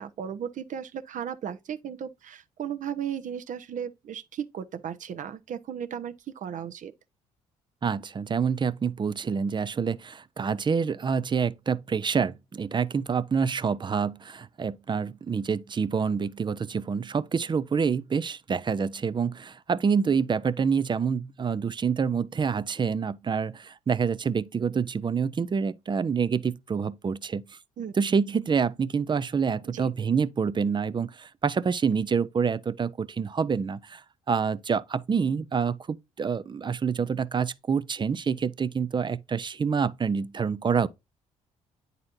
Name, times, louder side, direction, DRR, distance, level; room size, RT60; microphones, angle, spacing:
voice 1, 0.0-6.9 27.8-27.9 29.7-29.9, right 8 dB, 50° right, 0.9 m, -35 dB
voice 2, 7.8-27.6 28.0-40.9, right 6 dB, 30° right, 0.5 m, -27 dB
9.6 x 4.1 x 2.6 m
hypercardioid pair, 50°, 16 cm